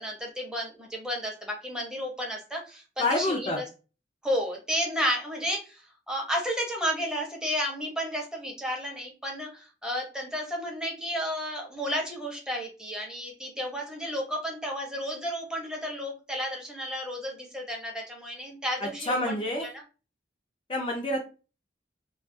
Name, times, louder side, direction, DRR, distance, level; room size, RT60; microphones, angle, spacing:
voice 1, 0.0-3.6 4.2-5.8 6.1-19.7, equal, 5° right, 0 dB, 0.7 m, -32 dB
voice 2, 3.0-3.6 18.8-19.7 20.7-21.2, left 1 dB, 30° left, 0 dB, 0.4 m, -28 dB
2.3 x 2.2 x 2.5 m, 0.32 s
head